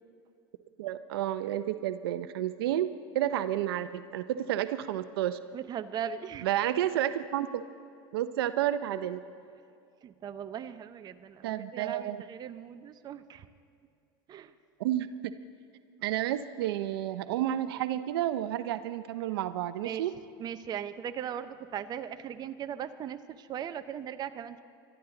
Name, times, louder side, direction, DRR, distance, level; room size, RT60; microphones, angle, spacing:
voice 1, 0.8-2.9 3.1-5.4 6.4-7.6 8.1-9.2 11.4-12.2 14.8-15.3 16.0-20.1, right 12 dB, 80° right, 12 dB, 0.6 m, -31 dB
voice 2, 5.5-6.5 8.9-9.0 10.0-13.5 14.3-14.5 19.8-20.0 20.4-24.6, right 9 dB, 35° right, 10 dB, 0.7 m, -39 dB
21.5 x 12.5 x 3.9 m, 2.4 s
supercardioid pair, 110°, 12 cm